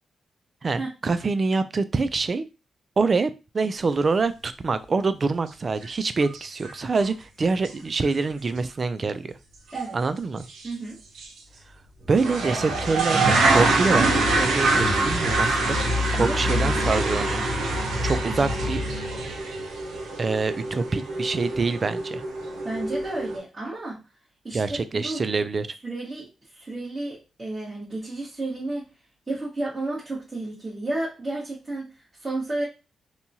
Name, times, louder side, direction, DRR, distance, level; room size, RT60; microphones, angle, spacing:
voice 1, 0.6-2.5 3.0-9.3 9.9-10.5 12.1-17.4 18.0-18.8 20.2-22.2 24.5-25.7, right 4 dB, 45° right, 13 dB, 0.3 m, -25 dB
sound 1, 5.8-5.9 6.2-6.7 7.0-7.1 7.6-7.7 8.0-8.1 9.7-9.9 10.5-10.7 11.2-11.3 12.1-23.4, right 2 dB, 85° right, 0.7 m, -24 dB
voice 2, 10.6-11.0 16.1-17.6 22.6-24.0 24.4-25.2 25.8-28.9 29.3-32.6, right 2 dB, 25° right, -7 dB, 1.2 m, -32 dB
2.9 x 2.3 x 2.7 m, 0.30 s
cardioid pair, 70°, 0 cm